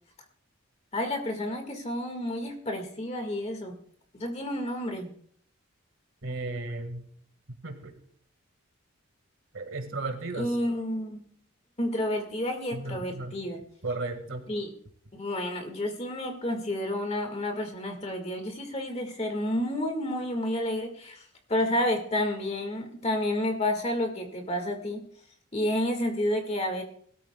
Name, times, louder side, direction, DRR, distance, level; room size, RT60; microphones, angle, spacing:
voice 1, 0.9-3.7 4.1-5.1 10.3-11.2 11.8-13.6 14.5-14.7 15.1-25.0 25.5-26.8, left 1 dB, 30° left, 4 dB, 1.8 m, -30 dB
voice 2, 6.2-7.1 7.6-7.9 9.5-10.6 12.7-13.4 13.8-14.5, right 2 dB, 70° right, 6 dB, 1.8 m, -35 dB
20.0 x 13.0 x 2.3 m, 0.63 s
head